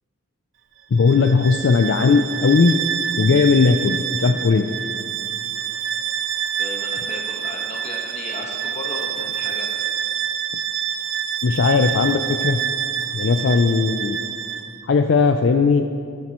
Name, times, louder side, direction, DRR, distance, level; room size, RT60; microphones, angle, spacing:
voice 1, 0.9-2.7 3.2-4.7 11.4-12.6 13.1-14.2 14.8-15.8, left 4 dB, 60° left, 6 dB, 0.4 m, -17 dB
Bowed string instrument, 0.9-14.8, right 9 dB, 60° right, 0.5 m, -27 dB
voice 2, 6.6-9.8, left 2 dB, 30° left, -1 dB, 1.3 m, -35 dB
19.0 x 7.2 x 3.0 m, 2.3 s
head